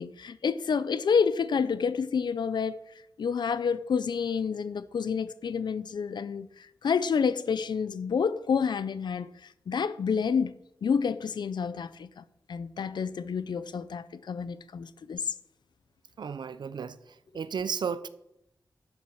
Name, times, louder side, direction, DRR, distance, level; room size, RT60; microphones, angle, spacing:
voice 1, 0.0-2.8 3.2-9.3 9.7-10.5 10.8-15.3, left 6 dB, 80° left, 0.6 m, -29 dB
voice 2, 16.2-17.0 17.3-18.1, right 6 dB, 80° right, 0.7 m, -33 dB
12.5 x 7.2 x 6.4 m
wide cardioid pair, 120°, 8 cm